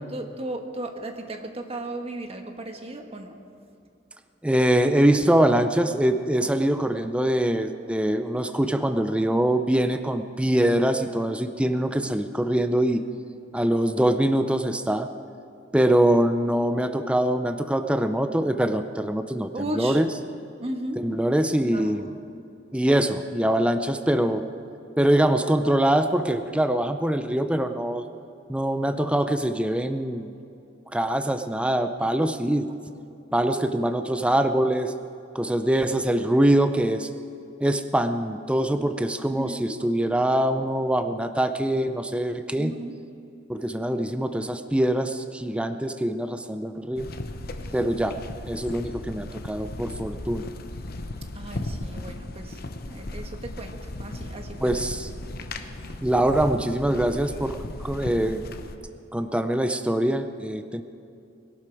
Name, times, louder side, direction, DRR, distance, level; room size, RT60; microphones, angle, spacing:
voice 1, 0.1-3.3 19.5-20.0 20.6-21.1 21.6-21.9 39.3-39.8 42.6-43.0 51.3-54.7, right 1 dB, 35° right, 4 dB, 1.3 m, -35 dB
voice 2, 4.4-13.0 13.5-15.1 15.7-20.1 21.0-22.1 22.7-24.4 25.0-28.1 28.5-30.3 30.9-32.7 33.3-34.9 35.3-37.1 37.6-42.7 43.5-47.1 47.7-48.2 48.5-50.5 54.6-55.1 56.0-58.4 59.1-60.8, right 1 dB, 5° right, 8 dB, 0.5 m, -23 dB
sound 1, 46.9-58.8, left 2 dB, 55° left, 0.9 m, -36 dB
21.5 x 12.0 x 4.6 m, 2.7 s
head